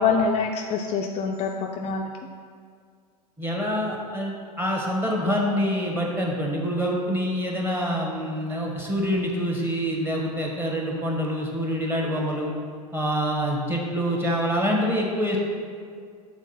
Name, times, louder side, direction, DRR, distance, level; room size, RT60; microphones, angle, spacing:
voice 1, 0.0-2.1, left 5 dB, 35° left, 2 dB, 0.4 m, -25 dB
voice 2, 3.4-12.5 12.9-15.4, equal, 10° right, -1 dB, 1.2 m, -26 dB
6.3 x 3.6 x 5.6 m, 2.1 s
hypercardioid pair, 90°, 20 cm